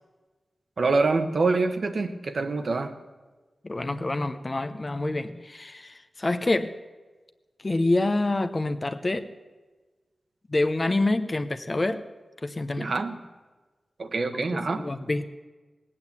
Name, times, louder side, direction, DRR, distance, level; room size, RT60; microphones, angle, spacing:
voice 1, 0.8-3.0 12.8-13.2 14.0-14.8, right 3 dB, 65° right, 7 dB, 1.2 m, -25 dB
voice 2, 3.6-6.7 7.6-9.3 10.5-12.0 12.4-13.0 14.3-15.3, left 2 dB, 35° left, 8 dB, 0.8 m, -27 dB
18.5 x 8.7 x 8.5 m, 1.3 s
wide cardioid pair, 110°, 0 cm